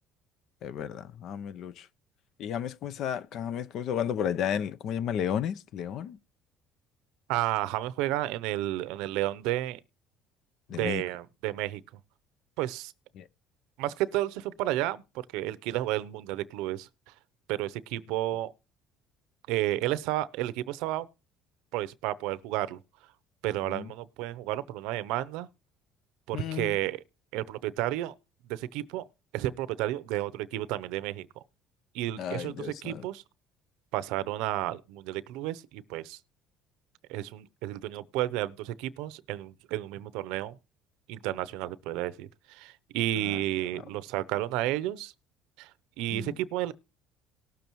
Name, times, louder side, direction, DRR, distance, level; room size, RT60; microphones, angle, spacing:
voice 1, 0.6-1.9 2.4-6.2 10.7-11.0 13.2-13.3 23.7-23.9 26.3-26.8 32.2-33.1 43.2-43.4 46.1-46.4, left 9 dB, 60° left, 0.6 m, -33 dB
voice 2, 7.3-9.8 10.7-11.8 12.6-12.9 13.8-15.0 15.3-16.9 17.5-18.5 19.5-21.1 21.7-22.8 23.4-25.5 26.3-27.0 27.3-28.1 28.5-29.1 29.3-31.3 31.9-33.2 33.9-36.2 37.1-40.6 41.1-45.1 45.6-45.7 46.0-46.7, right 15 dB, 85° right, 0.6 m, -31 dB
18.5 x 6.9 x 3.0 m
cardioid pair, 120°, 0 cm